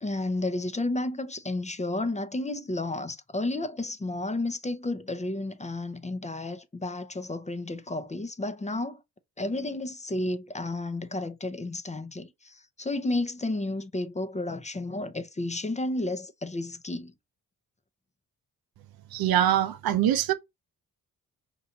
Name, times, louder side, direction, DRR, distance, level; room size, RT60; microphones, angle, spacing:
voice 1, 0.0-9.0 9.4-17.1, left 2 dB, 20° left, 0.6 m, -32 dB
voice 2, 19.1-20.3, right 11 dB, 75° right, 0.6 m, -23 dB
4.4 x 2.5 x 2.7 m
cardioid pair, 70°, 36 cm